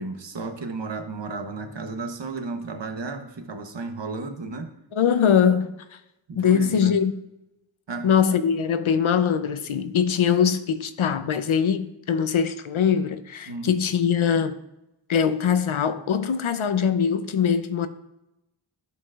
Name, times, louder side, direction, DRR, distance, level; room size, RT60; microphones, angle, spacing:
voice 1, 0.0-4.7 6.3-6.9 7.9-8.1 13.5-13.7, right 3 dB, 60° right, 1.0 m, -33 dB
voice 2, 4.9-5.8 6.4-7.1 8.0-14.6 15.1-17.9, left 7 dB, 75° left, 0.7 m, -22 dB
13.5 x 4.7 x 2.4 m
wide cardioid pair, 65°, 48 cm